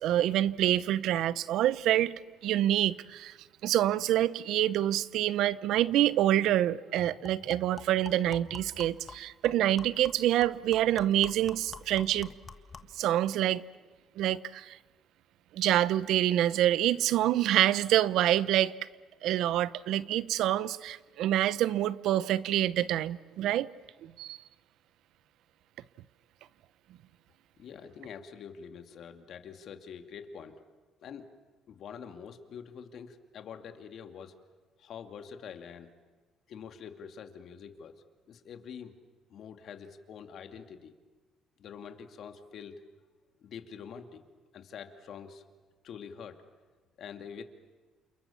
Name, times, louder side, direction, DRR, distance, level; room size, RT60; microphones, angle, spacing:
voice 1, 0.0-3.3 3.6-12.3 12.9-13.6 14.2-14.8 15.5-18.8 19.2-23.7 24.0-24.4, right 12 dB, 75° right, 0.8 m, -27 dB
sound 1, 6.0-6.1 6.5-6.6 7.0-13.0, left 4 dB, 30° left, 1.5 m, -48 dB
voice 2, 27.6-30.6 31.0-31.3 31.7-34.3 34.8-35.9 36.5-38.0 38.3-39.0 39.3-40.9 41.6-42.8 43.4-44.2 44.5-45.4 45.8-46.4 47.0-47.4, left 7 dB, 60° left, 2.5 m, -45 dB
28.5 x 28.5 x 7.2 m
cardioid pair, 95°, 0 cm